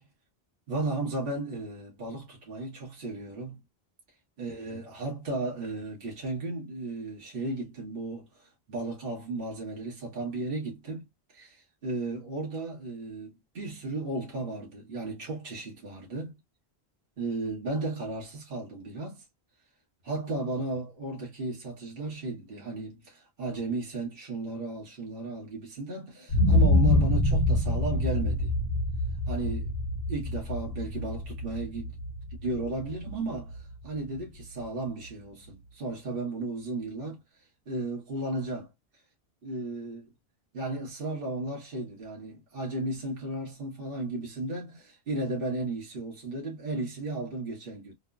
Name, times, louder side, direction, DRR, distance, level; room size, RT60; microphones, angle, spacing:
voice 1, 0.7-3.6 4.4-11.1 11.3-16.4 17.2-19.2 20.0-28.5 29.3-29.7 30.1-31.9 32.4-37.2 37.7-38.7 39.4-40.1 40.5-48.0, right 2 dB, 65° right, 1.2 m, -35 dB
sound 1, 26.3-34.2 34.6-34.7, left 1 dB, 80° left, 1.0 m, -26 dB
3.0 x 2.0 x 2.2 m
omnidirectional pair, 1.1 m